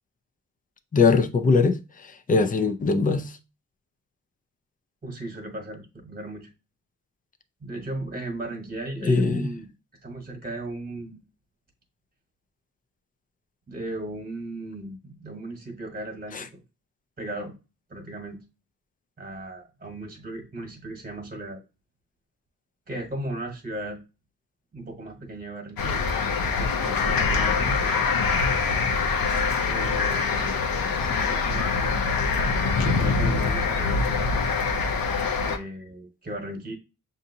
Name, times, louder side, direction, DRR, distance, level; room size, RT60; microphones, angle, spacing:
voice 1, 0.9-3.3 9.0-9.5 16.3-16.4, left 4 dB, 25° left, 0.5 m, -21 dB
voice 2, 5.0-6.5 7.6-9.7 10.0-11.2 13.7-16.5 17.2-17.5 17.9-18.4 19.2-21.6 22.9-24.0 24.7-26.0 26.6-28.1 29.7-30.7 31.0-32.5 32.8-34.3 35.4-36.7, right 2 dB, 25° right, 1.3 m, -36 dB
sound 1, 25.8-35.6, left 4 dB, 85° left, 0.8 m, -24 dB
7.1 x 2.6 x 2.7 m
wide cardioid pair, 125°, 34 cm